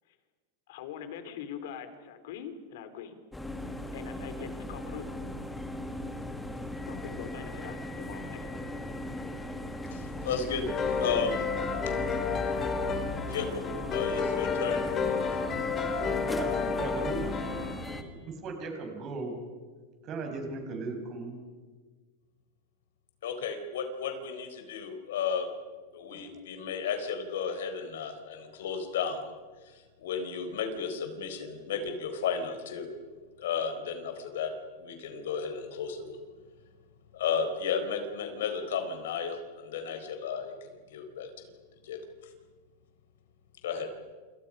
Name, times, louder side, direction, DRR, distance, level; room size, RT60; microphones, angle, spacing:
voice 1, 0.7-3.2 3.9-5.0 6.9-8.5, left 8 dB, 65° left, 9 dB, 3.5 m, -43 dB
sound 1, 3.3-18.0, left 1 dB, 5° left, 1.8 m, -38 dB
voice 2, 9.9-10.6 11.0-11.4 13.3-13.6 13.9-14.8 23.2-25.5 25.9-29.3 29.6-32.9 33.4-34.5 34.8-36.2 37.1-40.5 40.9-41.5 41.8-42.0 43.6-43.9, left 6 dB, 85° left, 6 dB, 4.3 m, -33 dB
sound 2, 10.7-17.8, left 5 dB, 20° left, 2.3 m, -31 dB
voice 3, 16.3-17.4 18.1-19.4 20.0-21.4 26.1-26.3, right 3 dB, 30° right, 3 dB, 5.8 m, -37 dB
29.0 x 27.5 x 5.5 m, 1.4 s
supercardioid pair, 165°, 0 cm